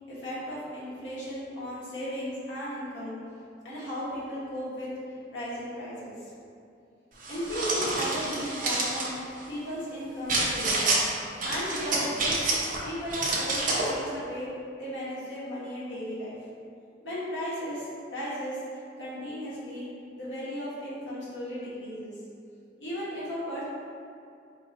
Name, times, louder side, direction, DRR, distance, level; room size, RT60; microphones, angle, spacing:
voice 1, 0.1-3.2 3.6-6.3 7.3-9.2 9.5-10.9 11.4-12.5 12.8-14.5 14.8-16.4 17.0-19.9 20.1-22.1 22.8-23.6, equal, 75° left, -9 dB, 1.3 m, -35 dB
sound 1, 7.2-9.1 10.3-11.0 11.4-12.8 13.1-13.9, right 2 dB, 45° right, 0.7 m, -28 dB
4.7 x 3.0 x 2.9 m, 2.5 s
head